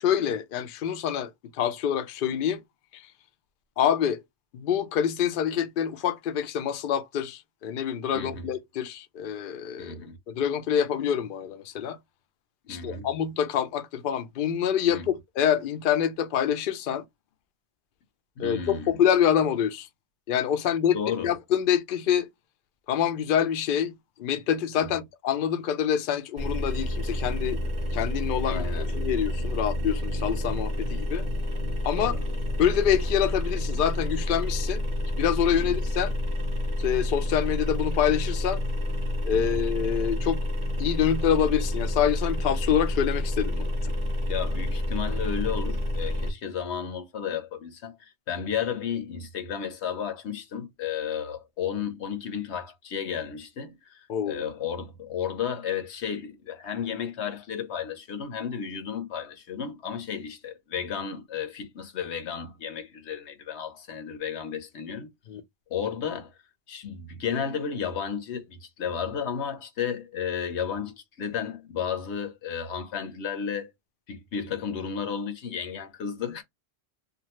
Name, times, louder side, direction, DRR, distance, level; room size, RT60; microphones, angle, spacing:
voice 1, 0.0-2.6 2.9-3.0 3.8-4.2 4.5-10.0 10.3-12.0 12.7-17.0 18.4-19.9 20.3-21.0 21.2-22.3 22.9-23.9 24.2-27.6 27.9-31.2 31.8-32.1 32.6-34.8 35.1-36.1 36.8-38.6 39.2-40.4 40.8-43.7 54.1-54.4 65.3-65.4, left 9 dB, 60° left, 0.6 m, -26 dB
voice 2, 8.1-8.5 9.8-10.2 12.7-13.1 14.9-15.1 18.4-19.0 20.9-21.3 28.5-28.9 31.9-32.2 35.6-35.8 39.3-39.6 44.3-65.1 65.7-66.3 66.7-73.7 74.1-76.4, left 7 dB, 75° left, 1.0 m, -33 dB
sound 1, 26.4-46.3, left 1 dB, 30° right, 0.8 m, -29 dB
2.6 x 2.3 x 3.0 m
omnidirectional pair, 1.1 m